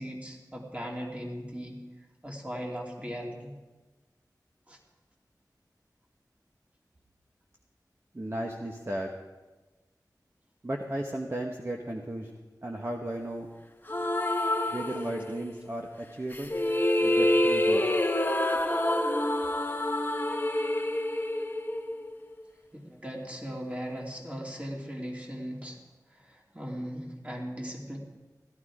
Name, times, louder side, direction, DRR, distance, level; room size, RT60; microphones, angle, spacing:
voice 1, 0.0-1.8 2.2-3.5 4.7-4.8 22.7-25.8 26.1-28.0, equal, 20° right, -1 dB, 2.8 m, -38 dB
voice 2, 8.1-9.1 10.6-12.3 12.6-13.5 14.7-16.6 17.0-17.9, right 1 dB, 35° right, 0 dB, 1.3 m, -35 dB
sound 1, 13.9-15.6 16.3-22.4, left 1 dB, 30° left, 1.0 m, -27 dB
16.5 x 12.0 x 4.9 m, 1.2 s
wide cardioid pair, 50°, 7 cm